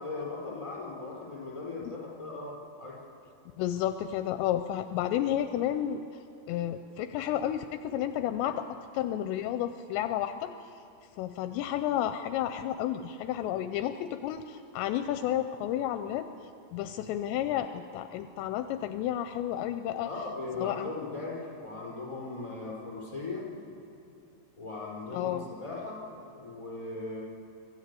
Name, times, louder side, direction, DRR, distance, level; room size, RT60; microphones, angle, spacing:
voice 1, 0.0-2.5 2.8-3.0 20.0-23.5 24.6-26.0 26.3-27.2, left 3 dB, 10° left, -4 dB, 4.5 m, -38 dB
voice 2, 3.6-10.8 11.2-20.1 20.6-20.9 25.1-25.5, left 11 dB, 80° left, 9 dB, 2.7 m, -32 dB
24.0 x 13.5 x 8.4 m, 2.7 s
omnidirectional pair, 5.2 m